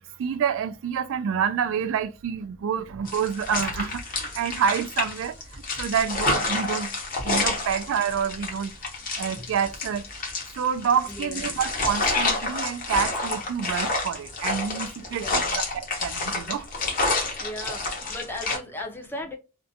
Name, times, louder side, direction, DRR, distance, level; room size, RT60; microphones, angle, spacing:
voice 1, 0.2-6.9 7.2-8.7 9.2-10.0 10.6-16.6, right 7 dB, 60° right, 0.3 m, -28 dB
sound 1, 3.1-18.6, left 3 dB, 40° left, 0.8 m, -29 dB
voice 2, 11.1-11.6 15.1-15.7 17.4-19.4, left 1 dB, 10° left, 0.5 m, -37 dB
2.5 x 2.2 x 2.5 m
head